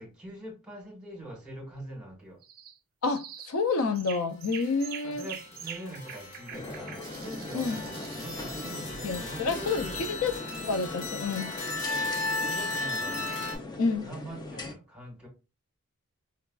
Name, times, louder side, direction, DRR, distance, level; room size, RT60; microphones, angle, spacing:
voice 1, 0.0-2.4 5.0-10.0 12.4-13.2 14.0-15.3, right 1 dB, 5° right, 1.2 m, -43 dB
sound 1, 2.4-2.8 3.1-3.6 3.9-8.9, right 8 dB, 45° right, 0.4 m, -44 dB
voice 2, 3.0-5.3 7.5-7.8 9.0-10.4 10.7-11.5 13.8-14.1, left 4 dB, 75° left, 0.4 m, -29 dB
sound 2, 4.6-13.6, left 3 dB, 55° left, 1.3 m, -36 dB
sound 3, 6.5-14.7, left 2 dB, 20° left, 0.5 m, -40 dB
4.7 x 2.3 x 2.2 m
head